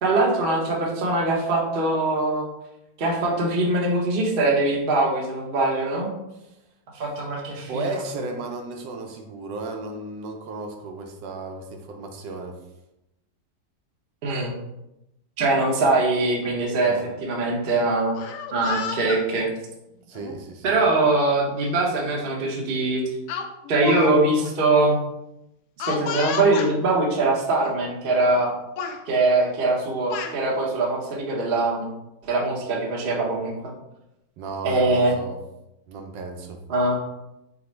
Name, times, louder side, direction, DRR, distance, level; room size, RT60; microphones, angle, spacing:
voice 1, 0.0-2.5 3.0-6.1 6.9-7.8 14.2-14.5 15.4-18.2 18.5-19.5 20.6-23.0 23.7-25.0 25.9-28.5 29.1-31.9 32.2-33.5 34.6-35.1 36.7-37.0, right 2 dB, 45° right, -1 dB, 0.7 m, -22 dB
voice 2, 7.7-12.6 16.8-17.1 20.1-20.8 34.4-35.4 35.9-36.6, right 3 dB, 75° right, 4 dB, 1.2 m, -34 dB
Speech, 18.0-19.2 20.1-20.4 21.6-21.7 22.1-22.3 23.3-24.1 24.4-24.5 25.8-26.7 27.6-27.7 28.1-28.5 28.8-29.0 29.8-30.4, left 6 dB, 75° left, 1.0 m, -31 dB
4.9 x 2.0 x 4.4 m, 0.89 s
omnidirectional pair, 2.0 m